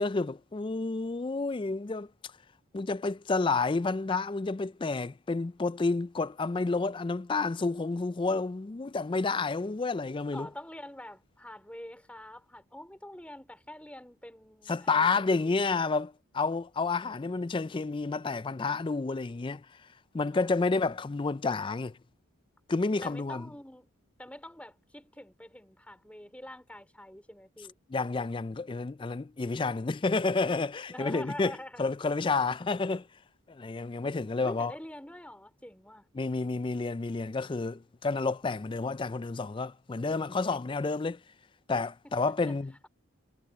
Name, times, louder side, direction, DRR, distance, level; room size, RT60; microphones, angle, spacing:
voice 1, 0.0-2.1 2.7-10.5 14.7-19.7 20.1-21.9 22.7-23.5 27.9-33.1 33.5-34.7 36.2-41.2 41.7-42.7, left 3 dB, 20° left, 0.3 m, -30 dB
voice 2, 10.3-15.5 20.3-21.0 23.0-23.9 24.2-27.8 30.9-31.8 34.4-36.1 42.0-42.1 42.5-42.6, left 1 dB, 5° left, 3.9 m, -46 dB
head